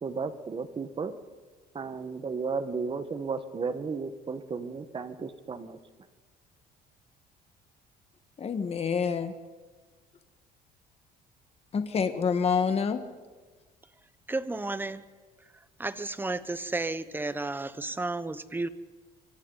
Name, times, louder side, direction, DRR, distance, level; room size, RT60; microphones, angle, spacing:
voice 1, 0.0-1.1 1.7-5.8, right 5 dB, 30° right, 10 dB, 1.5 m, -34 dB
voice 2, 8.4-9.3 11.7-13.0, left 6 dB, 35° left, 8 dB, 1.6 m, -27 dB
voice 3, 14.3-15.0 15.8-18.7, right 2 dB, 10° right, 13 dB, 1.0 m, -32 dB
27.5 x 24.5 x 4.1 m, 1.4 s
cardioid pair, 110°, 17 cm